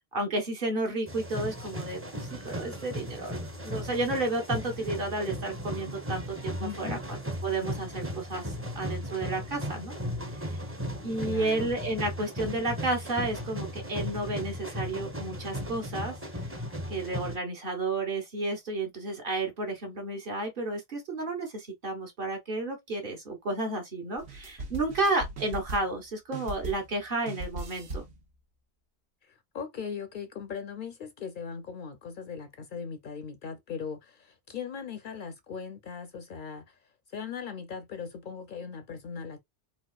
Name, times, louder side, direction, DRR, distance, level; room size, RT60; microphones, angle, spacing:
voice 1, 0.1-7.2 7.4-9.9 10.3-10.6 11.0-16.1 16.9-28.0, right 2 dB, 55° right, 1.3 m, -32 dB
sound 1, 1.1-17.4, equal, 15° right, 0.6 m, -36 dB
voice 2, 6.6-7.0 11.2-11.7 29.3-36.8 37.1-39.4, left 6 dB, 60° left, 0.6 m, -39 dB
sound 2, 24.2-26.0 26.3-27.0 27.3-28.2, right 2 dB, 85° right, 1.2 m, -39 dB
4.1 x 2.3 x 2.3 m
omnidirectional pair, 1.1 m